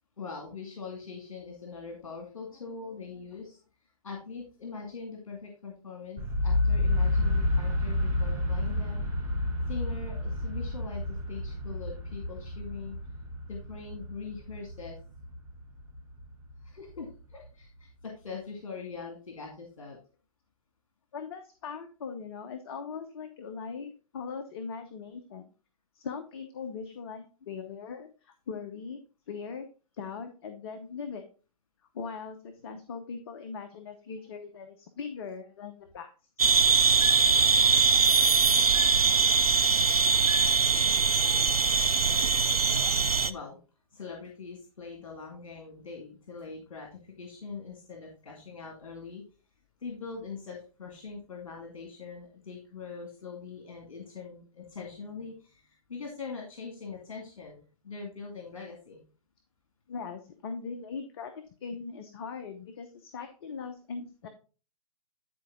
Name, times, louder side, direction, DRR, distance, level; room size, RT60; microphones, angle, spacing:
voice 1, 0.2-3.6 4.0-9.0 9.7-13.0 13.5-15.0 16.6-20.0 43.2-43.6 43.9-49.2 49.8-57.6 57.8-59.0, left 5 dB, 60° left, 0 dB, 2.3 m, -42 dB
sound 1, 6.2-18.0, left 2 dB, 15° right, 2.7 m, -31 dB
voice 2, 21.1-25.5 25.9-29.0 29.3-29.7 30.0-31.2 31.9-36.1 59.9-64.3, left 5 dB, 45° left, 7 dB, 0.9 m, -40 dB
sound 2, 36.4-43.3, right 5 dB, 85° right, 0.6 m, -22 dB
10.5 x 4.6 x 3.7 m, 0.36 s
figure-of-eight pair, 120°, 19 cm